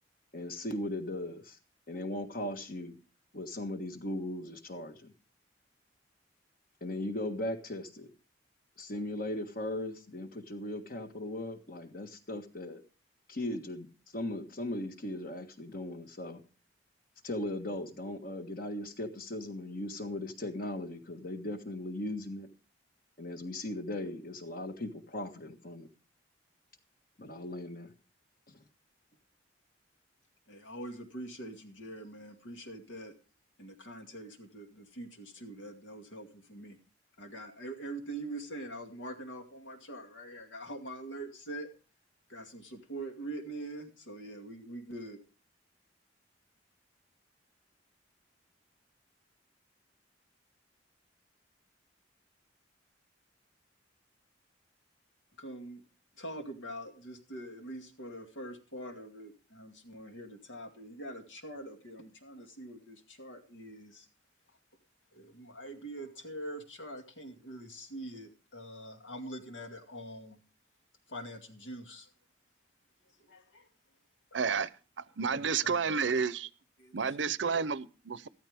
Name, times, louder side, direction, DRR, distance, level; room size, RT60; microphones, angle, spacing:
voice 1, 0.3-1.6 1.9-2.9 3.3-5.1 6.8-8.1 8.8-12.8 13.3-13.9 14.1-16.4 17.2-22.5 23.2-25.9 27.2-27.9 28.5-28.6, left 1 dB, 50° left, 1.5 m, -38 dB
voice 2, 30.5-33.1 33.6-36.8 37.2-41.7 42.3-45.2 55.4-55.8 56.2-64.1 64.5-64.6 65.1-70.4 71.1-72.1 73.0-73.7 74.3-74.7 75.2-76.0 76.8-77.3, right 1 dB, 90° left, 2.3 m, -44 dB
voice 3, 74.3-74.7 75.2-76.5 76.9-78.3, right 5 dB, 70° right, 0.7 m, -30 dB
13.5 x 13.0 x 3.5 m
head